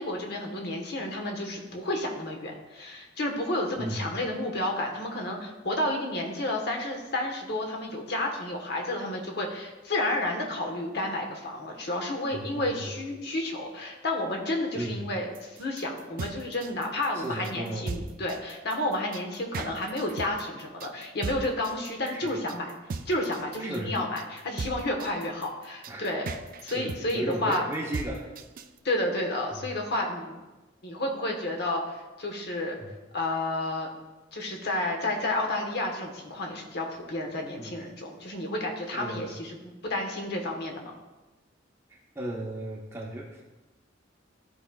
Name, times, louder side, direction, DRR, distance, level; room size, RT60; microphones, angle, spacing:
voice 1, 0.0-22.7 23.1-26.3 26.6-27.6 28.8-30.4 30.8-32.8 33.1-33.9 34.3-39.6 39.8-40.9, left 1 dB, 60° left, 1 dB, 1.2 m, -31 dB
voice 2, 12.3-12.9 14.7-15.1 17.1-18.2 22.1-22.3 23.6-24.1 25.9-26.0 26.7-28.3 29.5-29.7 32.8-32.9 37.6-37.7 38.9-39.4 41.9-43.4, right 1 dB, 15° right, -2 dB, 0.7 m, -36 dB
sound 1, 15.3-28.8, right 4 dB, 50° right, 0.4 m, -38 dB
13.0 x 5.0 x 2.3 m, 1.1 s
head